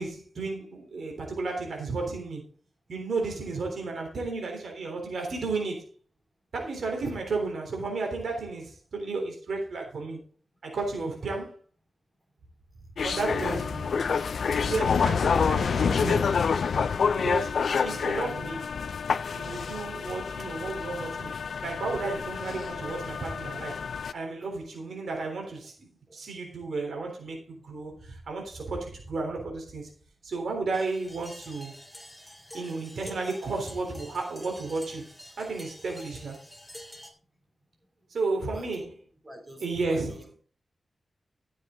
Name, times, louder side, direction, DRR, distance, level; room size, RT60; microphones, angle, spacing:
voice 1, 0.0-2.4 2.9-5.8 6.5-10.2 10.6-11.5 13.0-13.5 14.6-16.3 17.2-18.7 19.3-21.3 21.6-23.8 24.1-25.7 26.1-29.9 30.2-31.7 32.5-35.1 35.4-36.4 38.1-38.9 39.6-40.1, right 3 dB, 90° right, 3.6 m, -33 dB
sound 1, 13.0-24.1, left 6 dB, 85° left, 0.6 m, -28 dB
voice 2, 13.2-13.9 14.4-14.7 17.2-17.3 24.3-24.4 25.2-25.5 26.1-26.2 38.5-38.9 39.2-40.2, right 1 dB, 25° right, 3.2 m, -44 dB
sound 2, 30.7-37.1, equal, 5° left, 2.3 m, -47 dB
13.0 x 7.8 x 3.9 m
wide cardioid pair, 135°, 0 cm